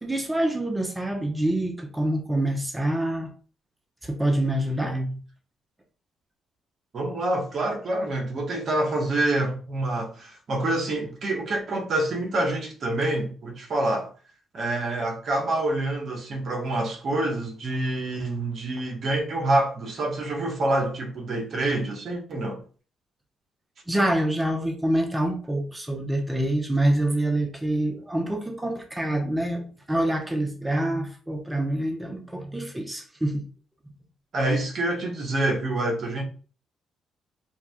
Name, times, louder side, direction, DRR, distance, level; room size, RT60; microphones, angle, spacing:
voice 1, 0.0-3.3 4.0-5.0 23.9-33.4, right 1 dB, 15° right, 1.0 m, -26 dB
voice 2, 6.9-14.1 14.5-22.6 34.3-36.2, right 2 dB, 60° right, 1.3 m, -27 dB
7.2 x 2.6 x 2.4 m
supercardioid pair, 55°, 0 cm